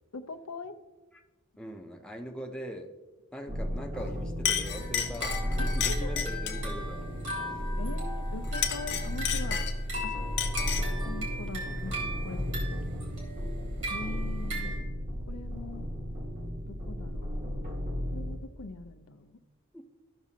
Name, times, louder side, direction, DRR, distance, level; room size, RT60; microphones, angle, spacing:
voice 1, 0.1-0.8 5.6-6.2 7.8-9.6 10.0-10.1 11.0-12.8 13.9-14.8 15.3-15.9 16.7-17.4 18.1-19.4, left 3 dB, 90° left, 8 dB, 0.6 m, -42 dB
voice 2, 1.6-2.9 3.3-5.4 5.7-7.0 7.4-7.6 19.7-19.8, equal, 5° left, 2 dB, 0.6 m, -41 dB
sound 1, 3.5-18.4, equal, 35° right, 1.1 m, -34 dB
Chink clink, 3.9-4.1 4.4-6.7 8.4-10.0 10.4-11.0, left 9 dB, 50° left, 0.7 m, -32 dB
sound 2, 4.7-14.8, right 1 dB, 55° right, 2.5 m, -39 dB
13.5 x 6.1 x 2.8 m, 1.2 s
head